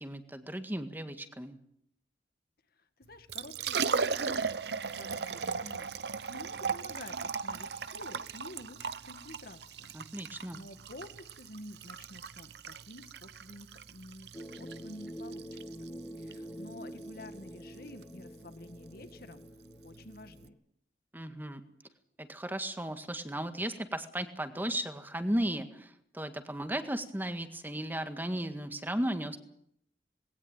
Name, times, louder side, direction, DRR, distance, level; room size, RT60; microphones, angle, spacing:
voice 1, 0.0-1.6 9.9-10.6 21.1-21.6 22.2-29.4, right 1 dB, 10° right, 8 dB, 1.8 m, -35 dB
voice 2, 3.1-4.5 4.9-9.9 10.3-14.3 14.6-15.9 16.2-19.4 19.8-20.6, left 1 dB, 60° left, 9 dB, 2.0 m, -50 dB
Liquid, 3.1-20.5, right 5 dB, 65° right, 0.8 m, -38 dB
sound 1, 14.3-20.6, equal, 15° left, 1.3 m, -46 dB
20.0 x 18.0 x 9.1 m, 0.72 s
head